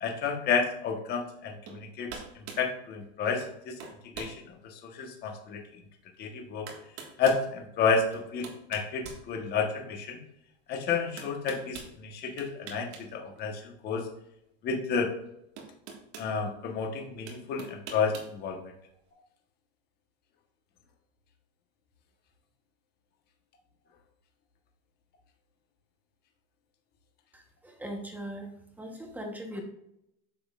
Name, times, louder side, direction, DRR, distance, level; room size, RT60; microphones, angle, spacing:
voice 1, 0.0-5.6 6.2-6.7 7.2-10.2 10.7-14.1 14.6-15.1 16.2-18.7, left 5 dB, 30° left, 2 dB, 1.2 m, -31 dB
sound 1, 1.7-1.8 2.1-2.7 3.4-3.5 3.8-4.4 5.0-5.1 6.1-6.2 6.7-7.5 8.1-9.8 11.2-11.9 12.4-13.1 13.4-13.5 14.9-15.0 15.6-16.3 17.3-18.3, right 6 dB, 70° right, 1.8 m, -43 dB
voice 2, 27.3-28.5 28.8-29.6, equal, 5° right, 3 dB, 0.9 m, -39 dB
8.8 x 6.2 x 2.4 m, 0.79 s
supercardioid pair, 155°, 35 cm